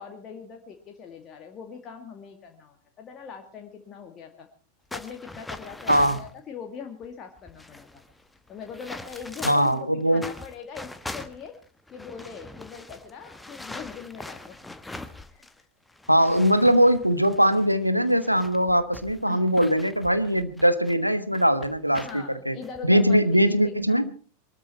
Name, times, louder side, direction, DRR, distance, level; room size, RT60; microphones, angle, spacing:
voice 1, 0.0-4.5 4.9-8.0 8.5-11.6 11.9-14.6 15.3-15.7 19.3-19.4 21.9-23.4 23.8-24.0, left 6 dB, 30° left, 3 dB, 2.1 m, -41 dB
sound 1, 4.9-6.3 7.0-7.1 7.4-9.8 10.2-15.6 15.9-20.9 21.3-22.2 22.6-22.8 23.3-23.6, left 2 dB, 5° left, 1.3 m, -42 dB
voice 2, 5.9-6.2 9.4-10.3 16.1-22.6 22.8-24.0, equal, 90° right, 11 dB, 1.3 m, -21 dB
23.0 x 13.0 x 4.3 m, 0.40 s
figure-of-eight pair, 90°, 0 cm